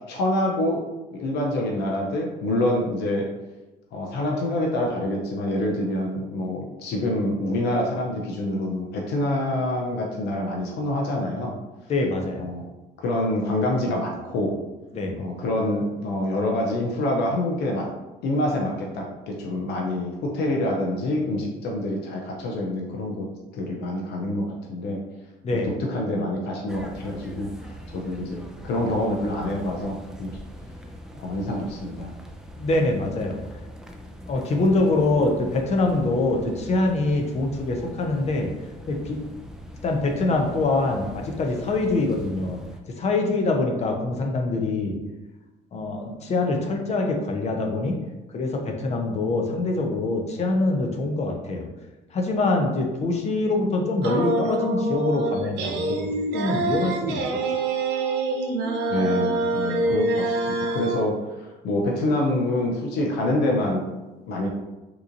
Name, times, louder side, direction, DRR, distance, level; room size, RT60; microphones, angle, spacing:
voice 1, 0.1-0.8 1.1-3.2 3.9-11.5 12.4-12.6 13.0-14.6 15.2-17.9 18.2-23.3 23.5-25.0 25.5-30.4 31.2-32.1 58.9-63.9 64.3-64.5, left 1 dB, 80° left, -1 dB, 0.6 m, -26 dB
voice 2, 11.9-12.4 14.9-15.1 25.4-25.7 32.6-33.4 34.3-38.5 38.9-39.2 39.8-42.6 43.0-45.0 45.7-47.9 48.3-51.7 52.1-56.1 56.3-57.2, left 2 dB, 40° left, 2 dB, 0.7 m, -24 dB
sound 1, 26.7-42.8, equal, 5° right, 0.4 m, -42 dB
sound 2, 54.0-61.0, right 2 dB, 80° right, 0.6 m, -26 dB
3.6 x 2.9 x 2.5 m, 1.1 s
cardioid pair, 110°, 17 cm